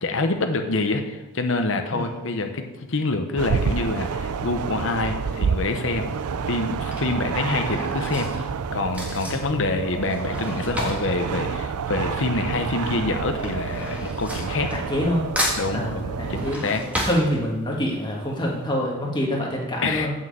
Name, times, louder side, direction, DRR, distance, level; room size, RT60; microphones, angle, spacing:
voice 1, 0.0-6.1 6.5-14.7 15.6-16.8 19.8-20.1, left 3 dB, 60° left, 6 dB, 0.9 m, -26 dB
sound 1, 3.4-16.6, right 5 dB, 85° right, 0.4 m, -29 dB
Drawer open or close / Cutlery silverware, 5.4-5.7 6.6-12.5 12.7-15.1 15.4-17.9 18.3-18.4 18.6-18.7, equal, 5° right, 1.6 m, -33 dB
voice 2, 9.2-9.6 14.7-15.3 15.7-16.6 17.0-20.1, equal, 20° left, -1 dB, 1.7 m, -26 dB
7.4 x 6.2 x 7.7 m, 1.1 s
head